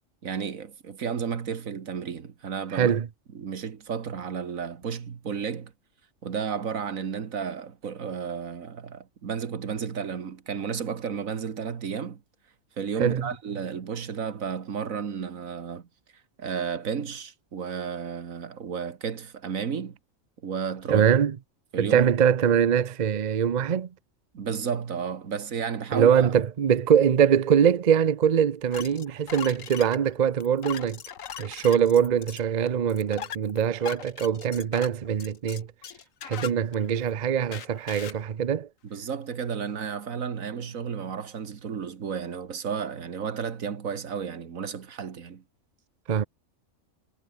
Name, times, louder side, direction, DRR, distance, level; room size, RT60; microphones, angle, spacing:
voice 1, 0.2-2.9 3.4-5.7 6.2-12.2 12.8-15.9 16.4-20.0 20.4-21.0 21.7-22.1 24.3-26.3 38.8-45.4, right 6 dB, 80° right, 1.9 m, -32 dB
voice 2, 2.7-3.1 13.0-13.3 20.9-21.4 21.8-23.9 25.9-31.0 31.4-35.7 36.2-38.7 46.1-46.2, right 8 dB, 40° right, 0.7 m, -23 dB
sound 1, 28.7-37.1 37.5-38.2, left 9 dB, 75° left, 1.4 m, -40 dB
omnidirectional pair, 1.4 m